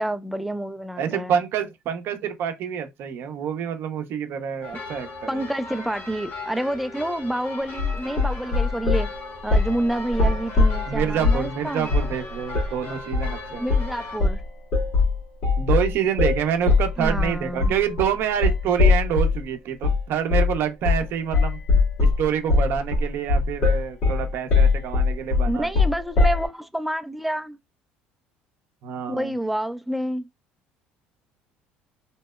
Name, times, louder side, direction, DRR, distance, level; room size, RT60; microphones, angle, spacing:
voice 1, 0.0-1.4 5.3-9.1 9.4-11.9 13.6-14.4 17.0-17.8 25.5-27.6 29.1-30.3, right 1 dB, ahead, 0.3 m, -28 dB
voice 2, 1.0-5.5 10.9-13.7 15.6-21.6 22.0-25.7 28.8-29.3, right 8 dB, 60° right, 0.5 m, -27 dB
sound 1, 4.6-14.2, left 3 dB, 55° left, 1.5 m, -38 dB
sound 2, 7.8-9.1 9.5-9.8 10.1-11.5 11.9-12.2 12.5-12.7 13.1-13.4 13.7-13.9 14.2-19.4 19.8-20.0 20.3-20.6 20.8-21.1 21.3-26.5, left 3 dB, 75° left, 1.2 m, -21 dB
2.7 x 2.0 x 2.2 m
hypercardioid pair, 70°, 4 cm